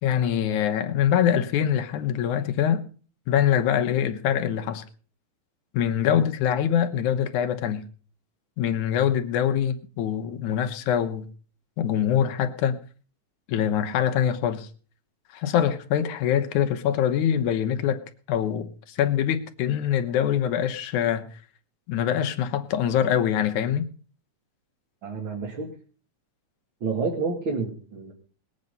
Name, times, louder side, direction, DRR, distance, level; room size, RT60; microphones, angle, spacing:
voice 1, 0.0-2.8 3.3-4.8 5.7-7.8 8.6-11.3 11.8-12.8 13.5-14.7 15.3-18.0 18.3-21.3 21.9-23.9, left 9 dB, 80° left, 2.5 m, -24 dB
voice 2, 25.0-25.7 26.8-28.1, right 4 dB, 45° right, 2.7 m, -29 dB
20.5 x 8.6 x 5.4 m
omnidirectional pair, 3.4 m